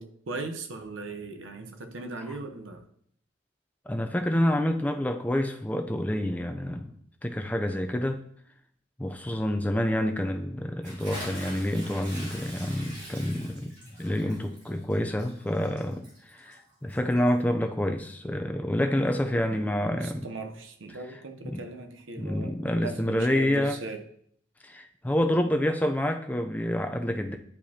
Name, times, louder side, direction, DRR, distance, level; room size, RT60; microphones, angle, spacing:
voice 1, 0.0-2.8 19.9-24.0, right 3 dB, 85° right, 6 dB, 0.8 m, -38 dB
voice 2, 3.9-6.9 7.2-8.2 9.0-13.7 14.0-20.3 21.1-21.6 22.2-23.8 24.6-27.4, left 1 dB, 10° left, 5 dB, 0.4 m, -28 dB
Bathtub (filling or washing) / Splash splatter, 10.8-17.4, equal, 65° right, 3.0 m, -44 dB
10.0 x 5.1 x 2.8 m, 0.65 s
head